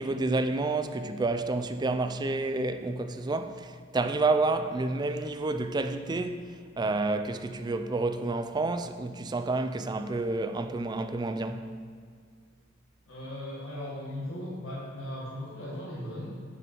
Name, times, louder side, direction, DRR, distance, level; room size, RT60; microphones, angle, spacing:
voice 1, 0.0-6.4 6.8-11.7, right 3 dB, 20° right, 0.4 m, -29 dB
voice 2, 13.1-16.3, left 1 dB, 85° left, 1.8 m, -37 dB
9.8 x 5.2 x 4.4 m
head